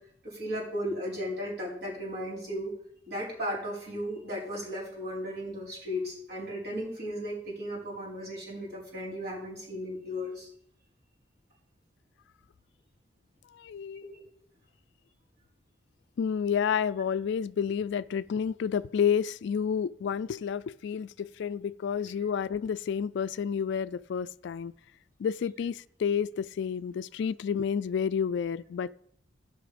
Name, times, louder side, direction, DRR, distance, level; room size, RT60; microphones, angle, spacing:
voice 1, 0.2-2.7 3.1-10.5 14.0-14.3, equal, 55° right, 4.9 m, -35 dB
voice 2, 13.5-14.2 16.2-24.7 25.2-28.9, left 7 dB, 60° left, 0.3 m, -30 dB
16.5 x 5.6 x 5.1 m
head